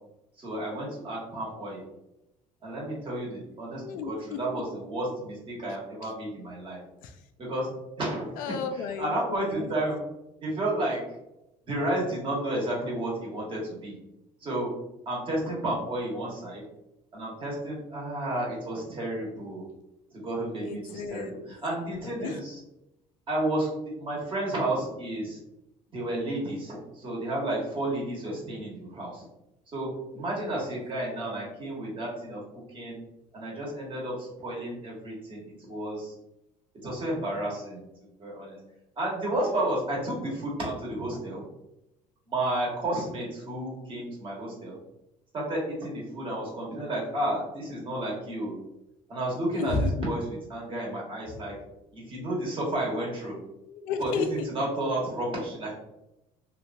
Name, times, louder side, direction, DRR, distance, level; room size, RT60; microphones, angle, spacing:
voice 1, 0.4-1.8 2.6-6.8 7.4-7.7 8.0-8.4 9.0-10.0 10.4-11.0 11.7-13.9 14.4-14.7 15.0-16.6 17.1-19.6 20.1-22.4 23.3-23.7 24.0-25.4 25.9-29.2 29.7-32.4 32.7-33.0 33.3-35.4 35.7-36.1 36.8-37.8 38.2-38.6 39.0-41.4 42.3-44.8 45.3-48.5 49.1-50.2 50.5-51.5 51.9-53.4 54.0-54.1 54.5-55.7, right 1 dB, 35° right, -4 dB, 1.3 m, -31 dB
voice 2, 3.8-4.6 6.0-6.1 7.0-7.3 8.4-9.8 20.6-21.5 21.8-22.4 49.5-50.1 53.7-54.5, left 4 dB, 75° left, 6 dB, 0.4 m, -33 dB
2.9 x 2.4 x 2.5 m, 0.90 s
cardioid pair, 120°, 14 cm